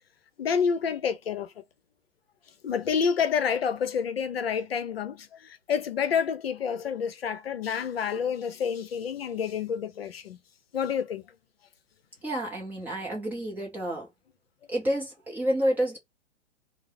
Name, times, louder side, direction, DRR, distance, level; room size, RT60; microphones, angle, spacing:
voice 1, 0.4-1.6 2.6-10.4 10.7-11.2, left 7 dB, 55° left, 0.6 m, -28 dB
voice 2, 12.2-14.1 14.7-16.0, right 1 dB, 5° right, 0.5 m, -29 dB
4.4 x 2.0 x 2.9 m
figure-of-eight pair, 115°, 35 cm